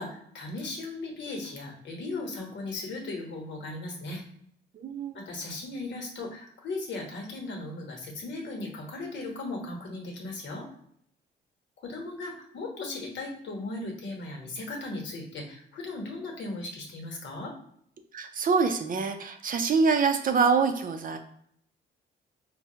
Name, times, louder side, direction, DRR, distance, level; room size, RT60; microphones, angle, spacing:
voice 1, 0.0-4.2 5.1-10.7 11.8-17.5, left 2 dB, 65° left, 0 dB, 1.1 m, -37 dB
voice 2, 4.7-5.2 18.1-21.2, right 5 dB, 45° right, 7 dB, 0.5 m, -25 dB
4.3 x 2.2 x 2.8 m, 0.68 s
cardioid pair, 90°, 20 cm